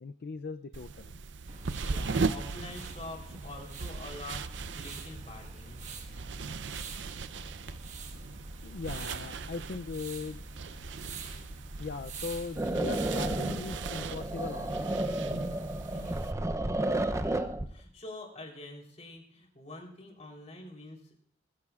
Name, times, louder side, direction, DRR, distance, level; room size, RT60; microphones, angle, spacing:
voice 1, 0.0-1.1 8.6-10.4 10.7-10.9 11.8-15.2, left 4 dB, 60° left, 9 dB, 0.4 m, -39 dB
sound 1, 0.7-16.3, right 4 dB, 85° right, 0.6 m, -39 dB
sound 2, 1.5-16.3, right 2 dB, 40° right, 1.5 m, -45 dB
voice 2, 1.8-5.8 7.6-7.8 15.9-21.2, left 2 dB, 40° left, 1 dB, 3.5 m, -47 dB
sound 3, 12.6-17.7, right 1 dB, 15° right, 0.6 m, -32 dB
21.5 x 15.0 x 2.4 m, 0.64 s
head